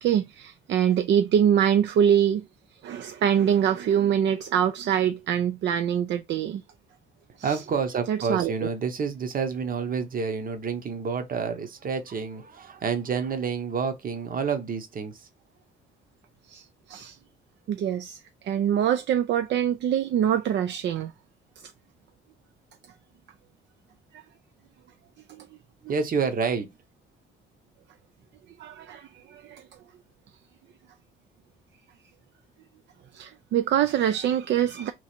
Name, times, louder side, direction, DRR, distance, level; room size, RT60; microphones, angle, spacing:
voice 1, 0.0-2.4 2.8-6.6 8.1-8.5 16.5-16.6 16.9-17.1 17.7-18.2 18.4-21.1 25.3-25.4 28.6-29.6 33.1-34.9, right 9 dB, 65° right, 0.4 m, -24 dB
voice 2, 7.4-15.3 25.9-26.7, right 5 dB, 45° right, 0.9 m, -29 dB
3.1 x 2.4 x 4.2 m
cardioid pair, 90°, 20 cm